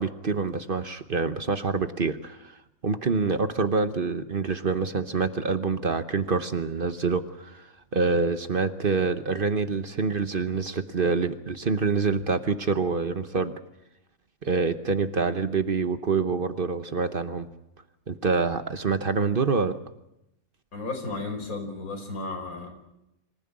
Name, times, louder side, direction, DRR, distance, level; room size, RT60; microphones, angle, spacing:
voice 1, 0.0-2.6 2.8-13.5 14.4-17.5 18.1-19.8, right 4 dB, 40° right, 10 dB, 1.1 m, -26 dB
voice 2, 20.7-22.7, left 3 dB, 85° left, 4 dB, 5.0 m, -33 dB
26.0 x 15.0 x 8.7 m, 0.86 s
omnidirectional pair, 1.4 m